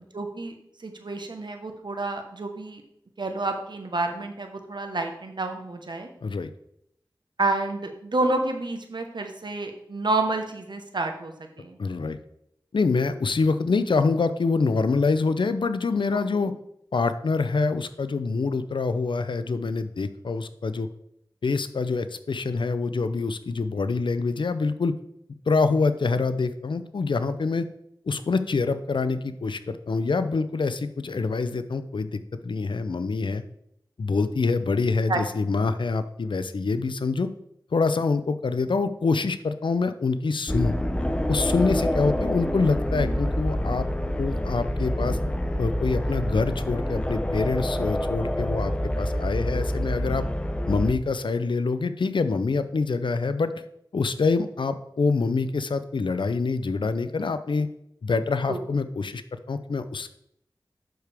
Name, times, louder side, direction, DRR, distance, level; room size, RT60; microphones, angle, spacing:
voice 1, 0.1-0.5 0.8-2.8 3.2-6.1 7.4-11.8 35.1-35.2 58.5-58.6, right 2 dB, 65° right, 5 dB, 1.2 m, -29 dB
voice 2, 11.8-12.2 12.7-16.5 16.9-20.9 21.4-24.9 25.5-27.7 28.1-33.4 34.0-37.3 37.7-40.7 41.3-43.9 44.2-45.2 45.6-50.2 50.7-53.5 53.9-57.7 58.0-59.2 59.5-60.1, left 4 dB, 75° left, 11 dB, 0.5 m, -25 dB
sound 1, 40.5-50.9, equal, 15° left, 0.7 m, -27 dB
7.8 x 6.6 x 3.5 m, 0.75 s
cardioid pair, 40°, 8 cm